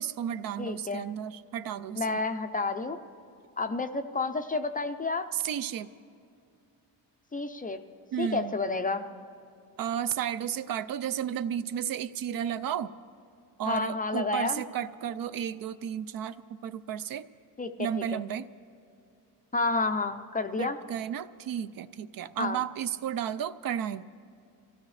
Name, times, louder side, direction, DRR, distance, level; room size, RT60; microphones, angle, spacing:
voice 1, 0.0-2.2 5.3-5.9 8.1-8.5 9.8-12.9 13.6-16.4 16.6-17.3 17.8-18.4 20.6-24.0, right 9 dB, 55° right, 13 dB, 0.5 m, -33 dB
voice 2, 0.6-1.1 2.0-3.0 3.6-5.3 7.3-7.8 8.2-9.0 13.6-14.6 17.6-18.2 19.5-20.8 22.4-22.6, left 3 dB, 20° left, 8 dB, 0.4 m, -30 dB
25.0 x 15.5 x 3.2 m, 2.5 s
cardioid pair, 140°, 41 cm